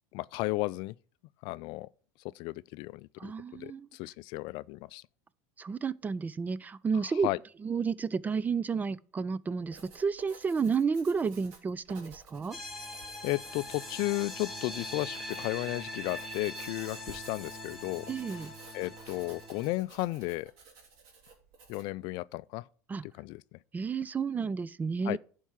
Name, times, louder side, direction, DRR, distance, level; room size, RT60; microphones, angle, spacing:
voice 1, 0.1-0.9 1.4-1.9 2.3-5.0 7.0-7.4 13.2-18.5 18.7-20.5 21.7-22.6 23.0-23.4 25.0-25.2, left 21 dB, 60° left, 0.4 m, -34 dB
voice 2, 3.2-3.9 5.6-7.3 7.6-12.6 18.1-18.5 22.9-23.0 23.7-25.2, right 5 dB, 20° right, 0.4 m, -31 dB
Writing, 9.5-22.0, right 5 dB, 65° right, 2.9 m, -54 dB
sound 1, 12.5-19.7, left 1 dB, ahead, 2.7 m, -42 dB
11.0 x 4.6 x 5.7 m
supercardioid pair, 115°, 9 cm